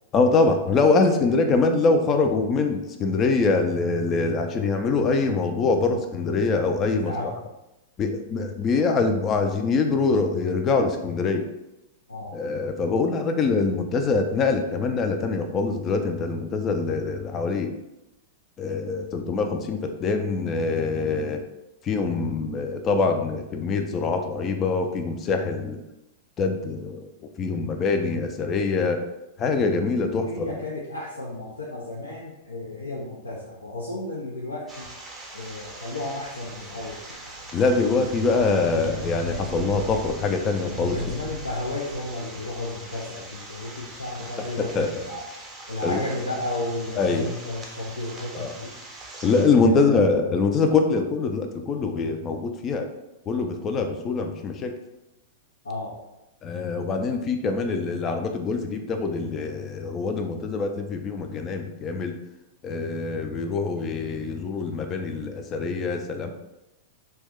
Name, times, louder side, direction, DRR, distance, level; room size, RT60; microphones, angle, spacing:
voice 1, 0.1-7.3 8.0-11.4 12.3-17.7 18.6-21.4 21.8-25.8 26.4-27.1 27.4-29.0 29.4-30.5 37.5-41.0 44.7-44.9 45.8-46.0 47.0-47.3 48.3-48.5 49.2-52.9 53.3-54.7 56.4-62.1 62.6-66.3, left 4 dB, 30° left, 5 dB, 0.4 m, -24 dB
voice 2, 1.1-1.6 6.9-7.3 12.1-12.4 30.3-34.9 35.3-37.0 40.7-45.2 45.7-48.7 49.6-50.0 55.6-56.0, left 2 dB, 85° left, -4 dB, 0.5 m, -33 dB
sound 1, 34.7-49.5, right 2 dB, 15° right, 0.6 m, -42 dB
sound 2, 35.9-42.1, right 2 dB, 80° right, 0.4 m, -39 dB
2.8 x 2.2 x 3.4 m, 0.93 s
hypercardioid pair, 100°, 0 cm